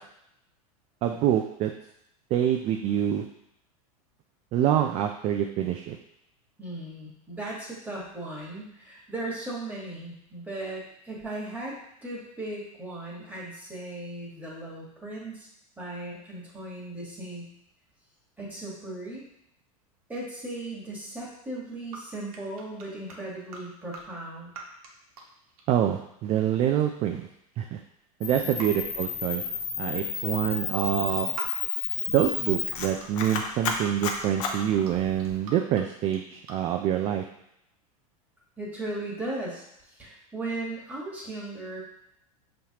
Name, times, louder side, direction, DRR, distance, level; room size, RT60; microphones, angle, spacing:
voice 1, 1.0-1.7 2.3-3.2 4.5-6.0 25.7-27.3 27.6-27.8 28.2-29.4 29.8-31.3 32.1-37.2, right 10 dB, 35° right, 4 dB, 0.4 m, -26 dB
voice 2, 6.6-11.8 12.0-15.5 15.8-17.4 18.4-19.2 20.1-24.5 28.4-28.6 38.6-41.8, right 2 dB, 10° right, -5 dB, 1.5 m, -37 dB
sound 1, 21.9-22.0 22.3-23.6 23.9-24.0 24.5-24.9 25.1-25.9 26.3-26.5 26.8-27.8 28.6-28.7 29.4-29.6 31.3-31.6 32.0-33.1 33.8-33.9 34.2-34.9 35.2-35.8 36.1-36.5, right 4 dB, 75° right, 1.2 m, -44 dB
Camera, 28.2-35.4, left 6 dB, 60° left, 0.8 m, -32 dB
5.5 x 3.2 x 2.9 m, 0.76 s
supercardioid pair, 125°, 19 cm